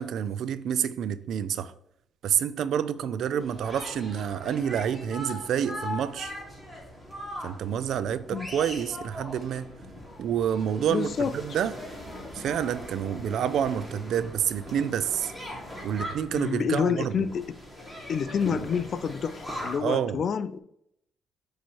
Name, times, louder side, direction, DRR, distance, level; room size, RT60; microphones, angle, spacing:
voice 1, 0.0-1.7 2.2-6.3 7.4-9.7 10.2-11.7 12.3-15.3 15.8-17.3 19.8-20.2, right 9 dB, 75° right, 0.4 m, -28 dB
sound 1, 3.4-19.8, left 1 dB, ahead, 2.1 m, -40 dB
voice 2, 10.9-11.3 16.3-17.4 18.1-20.6, left 6 dB, 55° left, 0.4 m, -28 dB
8.2 x 3.1 x 4.5 m
cardioid pair, 90°, 0 cm